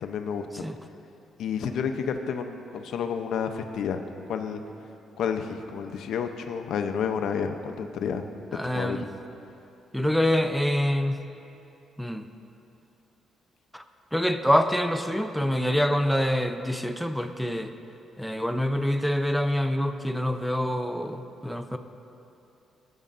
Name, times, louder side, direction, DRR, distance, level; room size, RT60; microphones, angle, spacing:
voice 1, 0.0-0.7 1.4-4.0 4.3-4.6 5.2-8.2 8.6-9.0, left 7 dB, 75° left, 6 dB, 0.6 m, -30 dB
voice 2, 8.5-9.1 9.9-11.2 12.0-12.3 13.7-13.8 14.1-17.7 18.2-21.8, equal, ahead, 7 dB, 0.5 m, -26 dB
16.0 x 9.6 x 2.5 m, 2.9 s
cardioid pair, 90°, 0 cm